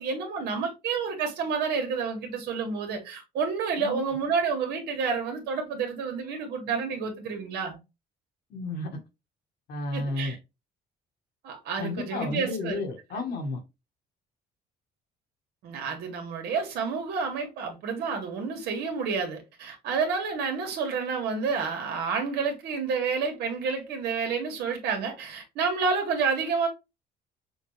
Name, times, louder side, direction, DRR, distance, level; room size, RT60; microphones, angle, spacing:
voice 1, 0.0-7.8 9.9-10.4 11.4-12.8 15.6-26.7, right 5 dB, 80° right, 1.7 m, -29 dB
voice 2, 8.5-9.0 9.7-10.3 11.8-13.6, left 2 dB, 70° left, 1.7 m, -32 dB
6.3 x 2.4 x 3.1 m
cardioid pair, 110°, 17 cm